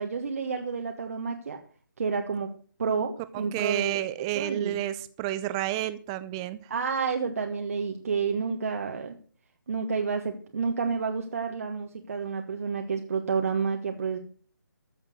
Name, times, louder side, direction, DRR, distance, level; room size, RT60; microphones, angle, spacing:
voice 1, 0.0-1.6 2.0-2.5 2.8-4.0 4.3-4.8 6.7-9.2 9.7-14.2, right 5 dB, 45° right, 4 dB, 1.5 m, -30 dB
voice 2, 3.5-6.6, right 13 dB, 15° right, 14 dB, 0.6 m, -30 dB
14.0 x 7.4 x 7.8 m, 0.44 s
figure-of-eight pair, 150°, 11 cm